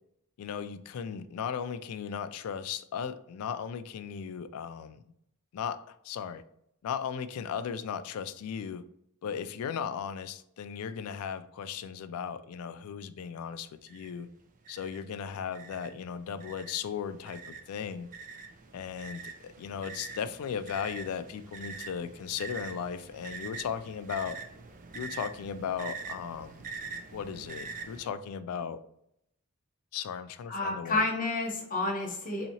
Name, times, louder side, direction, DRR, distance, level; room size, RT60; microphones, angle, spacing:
voice 1, 0.4-5.0 5.5-6.4 6.8-8.8 9.2-14.3 14.7-18.1 18.7-24.4 24.9-26.6 27.1-28.8 29.9-31.1, left 7 dB, 80° left, 12 dB, 0.3 m, -36 dB
sound 1, 13.9-14.1 14.6-15.0 15.5-28.1, right 4 dB, 35° right, 0.4 m, -44 dB
voice 2, 30.5-32.5, left 2 dB, 40° left, 0 dB, 1.0 m, -30 dB
4.0 x 2.7 x 2.8 m, 0.74 s
head